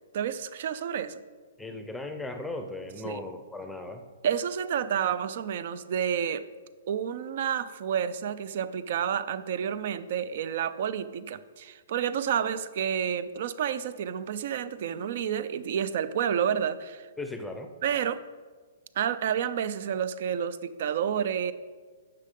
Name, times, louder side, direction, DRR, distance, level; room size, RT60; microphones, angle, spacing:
voice 1, 0.1-1.2 3.0-3.2 4.2-6.5 6.9-17.1 17.8-18.2 19.0-21.5, right 8 dB, 55° right, 15 dB, 0.5 m, -30 dB
voice 2, 1.6-4.0 17.2-17.7, left 2 dB, 5° left, 6 dB, 0.6 m, -37 dB
9.9 x 6.7 x 3.7 m, 1.5 s
hypercardioid pair, 150°, 0 cm